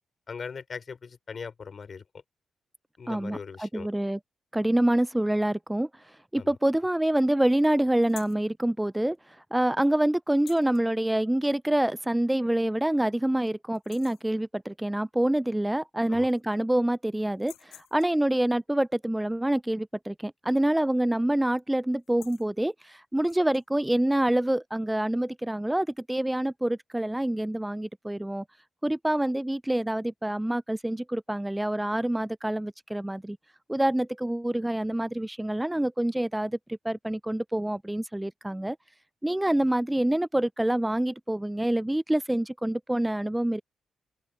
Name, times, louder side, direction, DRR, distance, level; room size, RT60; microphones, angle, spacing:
voice 1, 0.3-2.0 3.0-3.9 6.3-6.5 16.1-16.3, left 5 dB, 55° left, 3.6 m, -40 dB
voice 2, 3.1-4.2 4.5-5.9 6.3-9.2 9.5-28.4 28.8-33.4 33.7-38.8 39.2-43.6, right 1 dB, 10° right, 0.4 m, -26 dB
sound 1, 8.0-8.5 10.3-10.8 12.2-12.3 12.8-12.9 13.3-13.5 13.7-14.3 15.7-15.8 16.0-16.8 17.3-18.3 20.6-20.9 21.2-21.5 21.9-22.5 23.2-23.7, left 14 dB, 90° left, 5.1 m, -50 dB
supercardioid pair, 45°, 0 cm